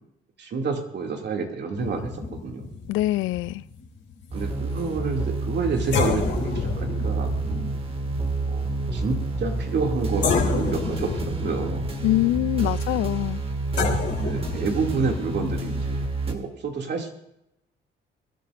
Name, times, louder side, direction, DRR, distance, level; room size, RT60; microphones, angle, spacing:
voice 1, 0.4-2.7 4.3-7.7 8.5-8.6 8.9-11.8 12.6-12.7 14.2-16.0 16.3-17.1, right 4 dB, 60° right, 2 dB, 2.5 m, -29 dB
sound 1, 1.8-5.0 5.4-5.5 5.9-9.9 10.2-15.9, left 5 dB, 65° left, 3.1 m, -31 dB
voice 2, 2.9-3.6 12.0-13.4, left 16 dB, 85° left, 18 dB, 0.4 m, -24 dB
sound 2, 4.3-16.3, right 2 dB, 30° right, 2.0 m, -29 dB
24.5 x 12.0 x 2.6 m, 0.84 s
cardioid pair, 90°, 20 cm